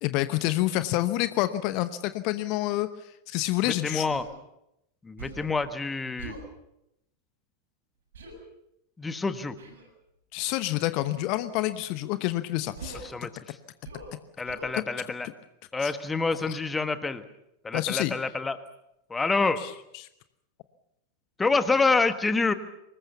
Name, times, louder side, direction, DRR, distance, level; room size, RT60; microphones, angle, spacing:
voice 1, 0.0-2.9 3.3-4.1 10.3-13.1 14.7-14.8 15.8-15.9 16.5-16.6 17.7-18.1 19.6-20.1, left 16 dB, 45° left, 12 dB, 1.0 m, -28 dB
voice 2, 3.6-4.2 5.0-6.3 9.0-9.5 13.0-13.6 14.4-15.3 15.7-17.2 17.6-18.6 19.1-19.6 21.4-22.5, left 3 dB, 10° left, 11 dB, 1.5 m, -27 dB
Human voice, 4.0-4.3 5.2-5.6 6.2-6.5 8.1-8.4 9.6-9.9 11.1-11.4 12.8-13.1 13.8-14.1 14.5-14.8, right 2 dB, 65° right, 7.3 m, -42 dB
25.0 x 20.5 x 6.9 m, 0.81 s
figure-of-eight pair, 90°, 0 cm